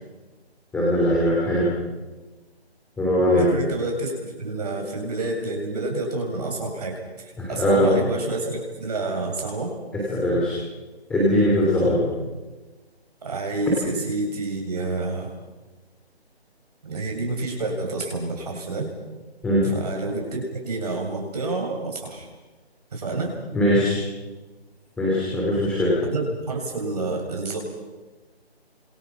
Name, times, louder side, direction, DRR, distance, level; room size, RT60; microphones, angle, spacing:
voice 1, 0.7-1.7 3.0-3.5 7.4-8.0 9.9-10.6 11.1-12.1 19.4-19.7 23.5-24.0 25.0-26.0, equal, 5° left, -6 dB, 3.1 m, -20 dB
voice 2, 3.4-9.7 13.2-15.3 16.8-18.9 19.7-22.3 22.9-23.4 26.1-27.6, right 2 dB, 40° right, 1 dB, 7.1 m, -29 dB
28.5 x 27.0 x 5.9 m, 1.2 s
figure-of-eight pair, 170°, 32 cm